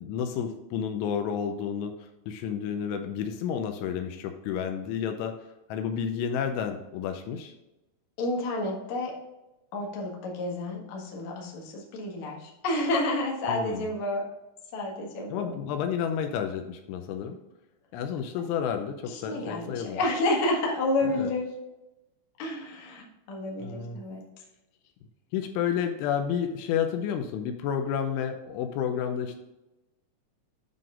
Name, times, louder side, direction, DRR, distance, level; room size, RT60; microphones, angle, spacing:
voice 1, 0.0-5.3 5.7-7.5 13.5-13.9 15.3-17.4 17.9-20.0 21.0-21.3 23.6-24.0 25.3-29.4, left 8 dB, 80° left, 6 dB, 3.0 m, -31 dB
voice 2, 8.2-9.1 9.7-14.2 14.7-15.5 19.1-21.5 22.4-24.2, left 2 dB, 55° left, -2 dB, 2.2 m, -30 dB
9.3 x 4.0 x 5.0 m, 0.97 s
omnidirectional pair, 5.5 m